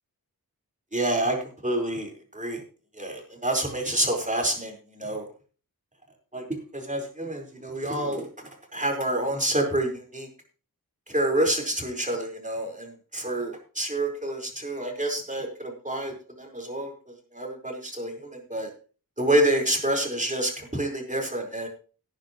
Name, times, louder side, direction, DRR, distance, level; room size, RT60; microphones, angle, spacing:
voice 1, 0.9-1.4 1.6-2.6 3.0-5.2 6.3-6.4 6.7-8.3 8.7-10.3 11.1-16.9 17.3-18.7 19.2-21.7, right 1 dB, 20° right, 1 dB, 4.7 m, -28 dB
17.5 x 10.5 x 3.1 m, 0.38 s
cardioid pair, 55°, 37 cm